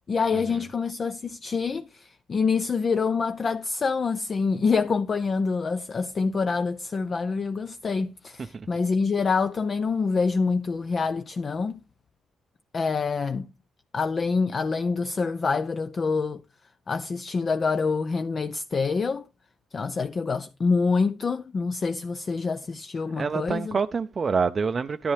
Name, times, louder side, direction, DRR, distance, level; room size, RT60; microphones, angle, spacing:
voice 1, 0.1-11.8 12.7-13.5 13.9-16.4 16.9-19.3 19.7-23.8, left 4 dB, 40° left, 0.5 m, -26 dB
voice 2, 23.2-25.1, right 5 dB, 40° right, 0.5 m, -26 dB
10.5 x 10.5 x 3.2 m
cardioid pair, 90°, 0 cm